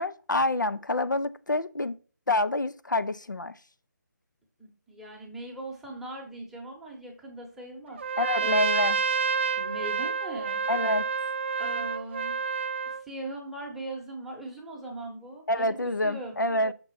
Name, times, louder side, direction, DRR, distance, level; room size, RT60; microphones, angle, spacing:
voice 1, 0.0-2.0 2.3-3.5 8.2-9.0 10.7-11.1 15.5-16.7, left 2 dB, 90° left, 0.5 m, -27 dB
voice 2, 4.6-8.0 8.4-8.6 9.6-10.6 11.6-12.4 13.0-16.4, right 1 dB, ahead, 0.8 m, -40 dB
Trumpet, 8.0-13.0, right 6 dB, 40° right, 0.3 m, -29 dB
6.0 x 3.7 x 5.4 m
figure-of-eight pair, 150°, 10 cm